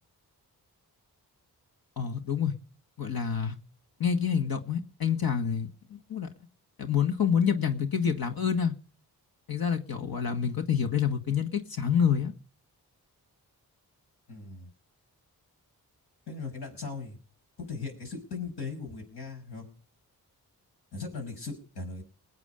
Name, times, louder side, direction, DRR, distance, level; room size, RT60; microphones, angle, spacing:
voice 1, 2.0-2.5 3.0-3.6 4.0-6.3 6.8-8.7 9.5-12.3, left 7 dB, 65° left, 1.8 m, -27 dB
voice 2, 14.3-14.7 16.3-17.2 17.6-19.7 20.9-22.0, left 4 dB, 80° left, 6.0 m, -38 dB
20.5 x 8.5 x 5.1 m
cardioid pair, 55°, 39 cm